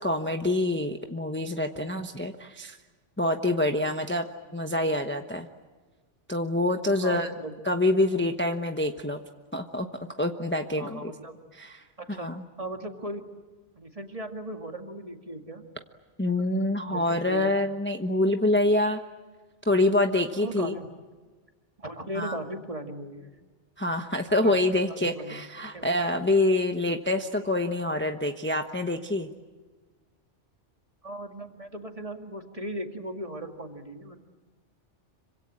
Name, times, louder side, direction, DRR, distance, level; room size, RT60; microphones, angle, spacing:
voice 1, 0.0-2.8 3.2-4.3 4.5-5.5 6.3-7.3 7.6-9.2 9.5-9.9 10.2-11.1 11.6-11.8 12.2-12.4 16.2-19.0 19.7-20.7 22.1-22.4 23.8-29.3, left 1 dB, 10° left, 5 dB, 1.1 m, -26 dB
voice 2, 7.0-7.6 10.8-11.4 12.0-13.2 13.7-15.7 16.8-17.5 20.4-20.9 21.8-23.3 24.4-24.6 24.9-25.5 25.7-25.9 31.0-34.2, right 1 dB, 30° right, 4 dB, 2.3 m, -38 dB
26.5 x 25.0 x 8.7 m, 1.3 s
omnidirectional pair, 1.2 m